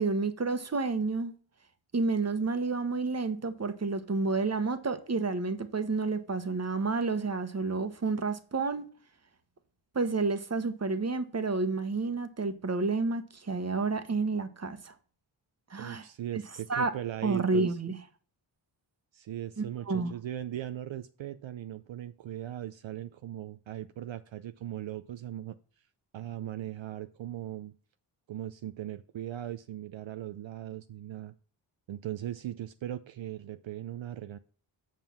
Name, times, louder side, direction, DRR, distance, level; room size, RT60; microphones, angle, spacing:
voice 1, 0.0-1.3 1.9-8.8 9.9-14.9 15.7-16.0 16.7-16.9 17.2-18.0 19.6-20.1, right 3 dB, 30° right, 1.2 m, -30 dB
voice 2, 15.8-17.8 19.1-25.6 26.1-27.7 28.3-31.3 31.9-34.4, right 12 dB, 70° right, 0.6 m, -39 dB
7.5 x 5.4 x 5.9 m
cardioid pair, 60°, 48 cm